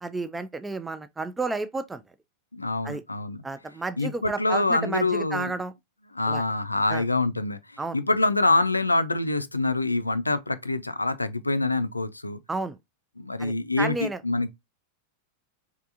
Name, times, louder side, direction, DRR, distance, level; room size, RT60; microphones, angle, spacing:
voice 1, 0.0-2.0 2.8-3.0 3.4-5.7 6.3-6.4 6.9-7.0 7.8-8.0 12.5-12.8 13.4-14.2, right 3 dB, 10° right, 0.3 m, -31 dB
voice 2, 2.5-3.4 4.0-5.5 6.1-12.4 13.2-14.5, left 2 dB, 85° left, 0.3 m, -25 dB
3.5 x 3.3 x 2.5 m
figure-of-eight pair, 90°, 0 cm